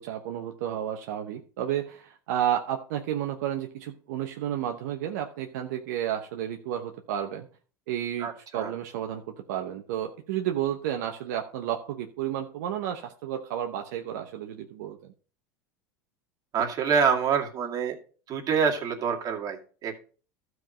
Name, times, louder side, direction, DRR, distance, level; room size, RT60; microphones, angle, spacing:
voice 1, 0.0-7.5 7.9-15.1, right 10 dB, 75° right, 4 dB, 1.0 m, -32 dB
voice 2, 8.2-8.7 16.5-17.9 18.3-20.0, right 6 dB, 40° right, 1 dB, 2.2 m, -26 dB
13.0 x 4.7 x 5.3 m, 0.40 s
supercardioid pair, 105°, 9 cm